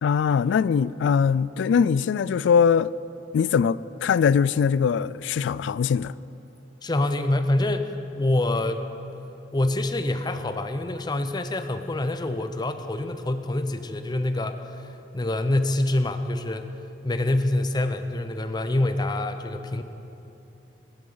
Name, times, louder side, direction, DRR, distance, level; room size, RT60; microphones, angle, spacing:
voice 1, 0.0-2.9 3.3-6.1, left 6 dB, 90° left, 0.3 m, -21 dB
voice 2, 6.8-8.8 9.5-14.9 15.1-16.7 17.0-19.8, left 1 dB, 25° left, 0.6 m, -26 dB
18.0 x 12.5 x 3.9 m
head